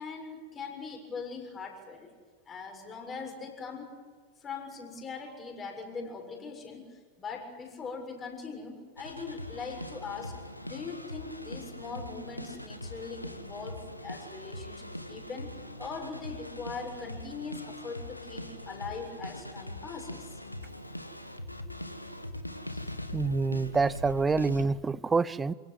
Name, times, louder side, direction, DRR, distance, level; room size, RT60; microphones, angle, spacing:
voice 1, 0.0-2.1 2.5-3.9 4.4-10.3 10.6-20.3, left 4 dB, 25° left, 2 dB, 7.0 m, -41 dB
sound 1, 9.0-24.7, left 1 dB, 90° left, 1.8 m, -41 dB
voice 2, 23.1-25.5, right 4 dB, 15° right, 20 dB, 0.7 m, -27 dB
29.0 x 17.5 x 9.5 m, 1.5 s
figure-of-eight pair, 90°, 0 cm